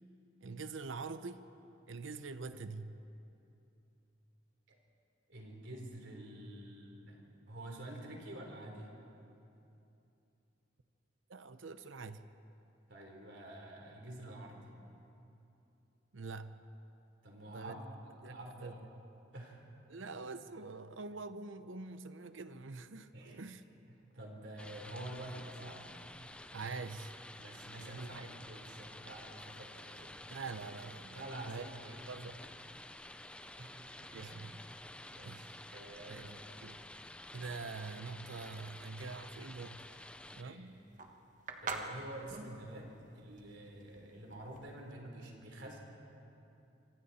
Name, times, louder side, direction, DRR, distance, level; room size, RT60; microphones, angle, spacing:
voice 1, 0.4-1.5 1.9-3.0 11.3-12.2 16.1-16.6 17.5-17.9 18.2-18.9 19.9-23.6 26.5-27.1 27.8-28.3 30.3-31.7 32.1-32.4 34.1-34.7 35.2-35.4 36.1-36.8 37.3-39.9 40.3-40.8, right 4 dB, 90° right, 11 dB, 0.8 m, -45 dB
voice 2, 5.3-7.2 7.5-8.9 12.9-14.7 17.2-18.8 19.3-19.7 20.0-20.2 23.1-23.4 24.1-25.8 27.4-30.1 31.1-31.9 33.6-33.8 34.2-36.3 40.3-40.6 41.6-42.9 43.1-45.8, right 1 dB, 75° right, 0 dB, 3.7 m, -48 dB
sound 1, 24.6-40.4, left 1 dB, 5° left, 0.6 m, -51 dB
sound 2, 39.9-44.9, right 4 dB, 40° right, 1.4 m, -44 dB
26.0 x 25.5 x 4.2 m, 2.8 s
head